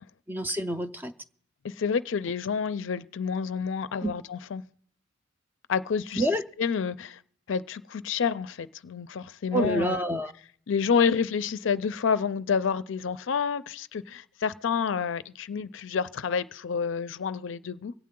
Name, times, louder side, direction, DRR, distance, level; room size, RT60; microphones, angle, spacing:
voice 1, 0.3-1.1 4.0-4.1 6.2-6.4 9.5-10.3, right 1 dB, 10° right, 0.4 m, -27 dB
voice 2, 1.6-4.6 5.7-6.2 6.6-7.2 7.5-10.0 10.7-17.9, left 6 dB, 70° left, 0.4 m, -29 dB
25.0 x 8.5 x 3.7 m
head